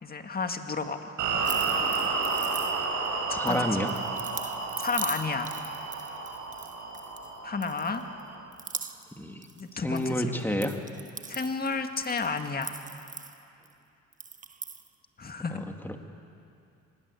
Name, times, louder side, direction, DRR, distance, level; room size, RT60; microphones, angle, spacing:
voice 1, 0.0-1.1 3.3-3.9 4.8-5.5 7.4-8.0 9.6-10.5 11.3-12.8 15.2-15.6, left 4 dB, 30° left, 6 dB, 2.0 m, -32 dB
sound 1, 1.2-8.4, right 4 dB, 85° right, 4.8 m, -31 dB
sound 2, 1.4-3.1 3.5-7.3 7.6-8.2 8.5-10.1 10.4-13.7 14.1-14.9, right 4 dB, 25° right, 1.1 m, -41 dB
voice 2, 3.3-3.9 9.2-9.5 9.7-10.8 15.5-16.0, equal, 5° left, 4 dB, 2.2 m, -30 dB
24.5 x 20.5 x 8.4 m, 2.5 s
cardioid pair, 90°, 30 cm